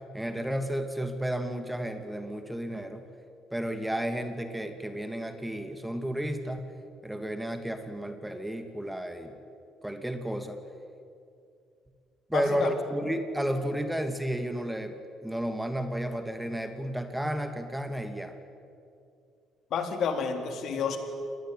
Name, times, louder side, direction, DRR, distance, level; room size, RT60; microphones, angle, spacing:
voice 1, 0.0-3.1 3.5-6.7 7.0-9.4 9.8-10.6 12.3-15.0 15.2-18.3, right 1 dB, 5° right, 7 dB, 2.4 m, -32 dB
voice 2, 12.3-12.7 19.7-21.0, left 6 dB, 65° left, 6 dB, 4.0 m, -30 dB
28.0 x 20.5 x 9.4 m, 2.4 s
cardioid pair, 85°, 0 cm